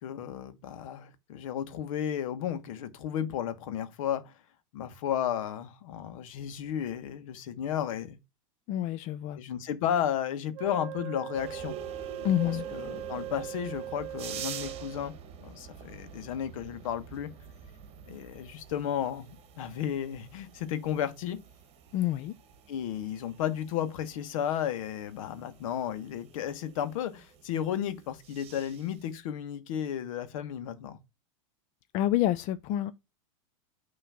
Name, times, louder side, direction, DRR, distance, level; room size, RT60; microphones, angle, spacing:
voice 1, 0.0-4.3 4.7-8.2 9.3-11.7 12.2-12.4 12.7-15.1 15.4-17.3 18.1-21.4 22.7-31.0, left 10 dB, 70° left, 1.4 m, -33 dB
voice 2, 8.7-9.4 12.2-12.7 21.9-22.3 31.9-32.9, left 13 dB, 40° left, 0.5 m, -28 dB
Wind instrument woodwind instrument, 10.5-15.2, right 12 dB, 55° right, 1.0 m, -40 dB
sound 1, 11.3-29.2, right 7 dB, 35° right, 1.4 m, -47 dB
5.9 x 3.1 x 5.6 m
supercardioid pair, 125°, 18 cm